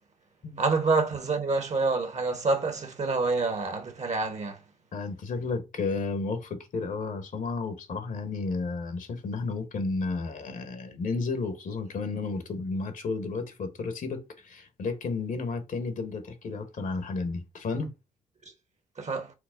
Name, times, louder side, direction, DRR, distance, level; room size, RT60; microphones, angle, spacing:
voice 1, 0.6-4.6 19.0-19.3, right 3 dB, 45° right, 1.2 m, -27 dB
voice 2, 4.9-17.9, left 4 dB, 55° left, 1.0 m, -32 dB
4.6 x 2.0 x 3.7 m
hypercardioid pair, 40°, 17 cm